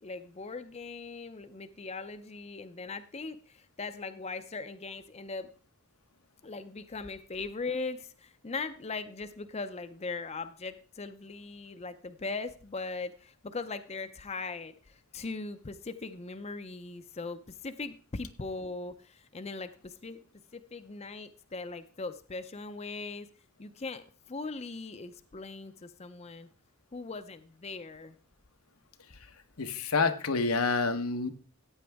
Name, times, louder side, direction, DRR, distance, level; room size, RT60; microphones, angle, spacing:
voice 1, 0.0-5.5 6.4-20.2 20.5-23.3 23.6-26.5 26.9-28.2, left 3 dB, 30° left, 10 dB, 0.6 m, -40 dB
voice 2, 29.6-31.3, left 4 dB, 90° left, 7 dB, 1.1 m, -28 dB
14.5 x 8.8 x 3.5 m, 0.38 s
head